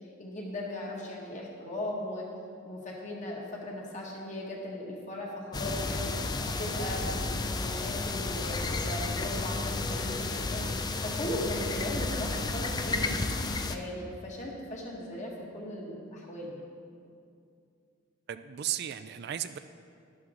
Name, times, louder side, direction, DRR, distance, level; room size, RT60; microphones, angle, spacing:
voice 1, 0.0-2.2 2.6-6.1 6.4-13.2 13.7-16.7, left 1 dB, 35° left, -3 dB, 1.8 m, -38 dB
sound 1, 5.5-13.8, left 3 dB, 20° left, 0.4 m, -32 dB
voice 2, 18.3-19.6, right 11 dB, 50° right, 11 dB, 0.3 m, -35 dB
11.5 x 11.5 x 3.8 m, 2.4 s
head